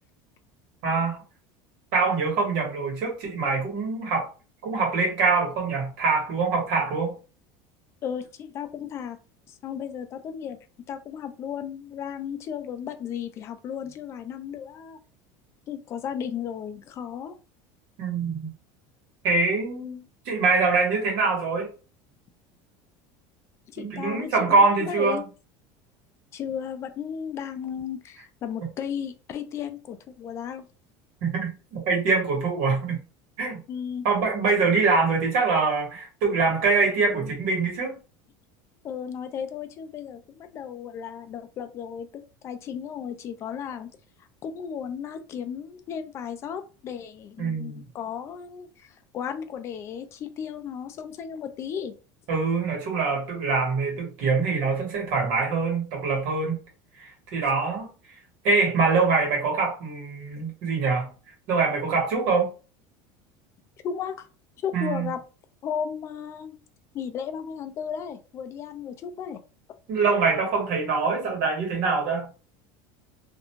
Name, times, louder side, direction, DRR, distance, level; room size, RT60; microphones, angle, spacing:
voice 1, 0.8-1.2 1.9-4.3 4.6-7.1 18.0-18.5 19.2-21.7 23.8-25.2 31.2-33.0 33.4-33.6 34.0-38.0 47.4-47.8 52.3-56.6 57.0-57.9 58.4-61.1 61.5-62.5 64.7-65.1 69.9-72.3, right 4 dB, 60° right, 1.2 m, -24 dB
voice 2, 8.0-9.2 9.6-10.6 10.9-15.0 15.7-17.4 23.7-25.2 26.3-30.6 33.7-34.1 38.8-43.9 44.4-51.9 63.8-64.2 64.6-65.2 65.6-66.5 66.9-69.4, left 8 dB, 25° left, 0.3 m, -34 dB
2.4 x 2.2 x 3.0 m
cardioid pair, 165°, 10 cm